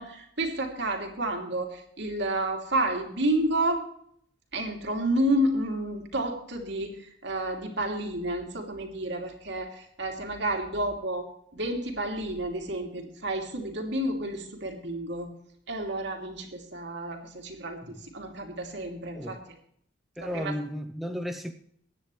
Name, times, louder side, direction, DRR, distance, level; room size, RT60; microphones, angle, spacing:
voice 1, 0.0-3.8 4.5-11.3 11.5-15.3 15.7-19.4 20.2-20.5, right 1 dB, 65° right, 2 dB, 2.9 m, -30 dB
voice 2, 20.2-21.5, equal, ahead, 5 dB, 0.7 m, -34 dB
23.5 x 9.8 x 3.2 m, 0.67 s
head